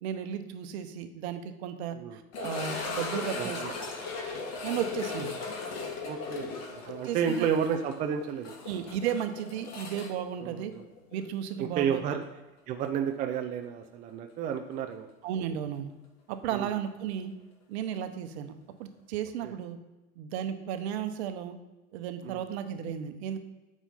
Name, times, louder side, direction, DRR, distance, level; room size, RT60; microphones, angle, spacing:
voice 1, 0.0-3.7 4.6-5.4 7.0-7.5 8.6-10.7 11.1-12.0 15.2-15.9 16.3-17.4 17.7-19.8 20.2-21.6 21.9-23.4, right 9 dB, 50° right, 9 dB, 1.1 m, -34 dB
sound 1, 2.3-11.3 11.5-11.6 12.2-12.3 14.9-15.0, left 4 dB, 35° left, 1.8 m, -37 dB
voice 2, 3.4-3.7 6.0-8.6 10.4-10.9 11.6-12.2 12.7-15.1 16.5-16.7 19.4-19.5 22.2-22.5, right 7 dB, 20° right, 5 dB, 0.4 m, -31 dB
9.1 x 6.2 x 4.2 m, 1.1 s
figure-of-eight pair, 95°, 42 cm